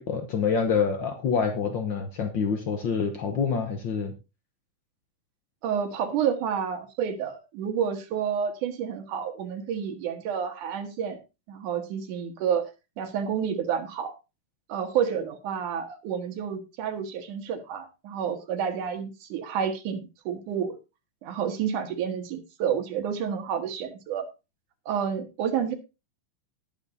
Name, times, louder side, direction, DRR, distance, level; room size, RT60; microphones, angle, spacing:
voice 1, 0.0-4.1, left 6 dB, 85° left, 5 dB, 1.0 m, -26 dB
voice 2, 5.6-11.2 11.5-12.6 13.0-14.1 14.7-20.8 21.2-24.2 24.9-25.7, right 8 dB, 80° right, 5 dB, 2.9 m, -29 dB
19.0 x 7.4 x 2.7 m, 0.28 s
omnidirectional pair, 3.6 m